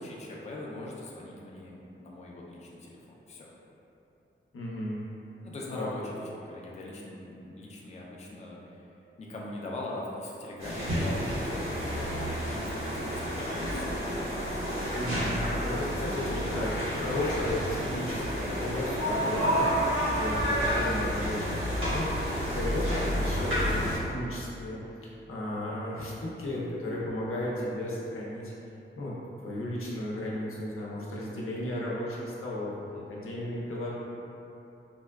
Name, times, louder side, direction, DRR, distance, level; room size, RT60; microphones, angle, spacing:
voice 1, 0.0-3.5 5.4-8.8 9.2-13.9 22.9-23.4 32.8-33.1, left 1 dB, 35° left, -4 dB, 0.4 m, -41 dB
voice 2, 4.5-5.0 5.7-5.9 14.9-19.7 20.0-22.1 22.4-22.9 23.2-28.4 29.0-29.1 29.4-33.9, left 1 dB, 90° left, -6 dB, 0.6 m, -34 dB
sound 1, 10.6-24.0, equal, 75° right, 1.2 m, -30 dB
sound 2, 16.5-23.9, left 2 dB, 90° right, 0.4 m, -48 dB
4.0 x 2.2 x 2.3 m, 2.9 s
wide cardioid pair, 130°, 21 cm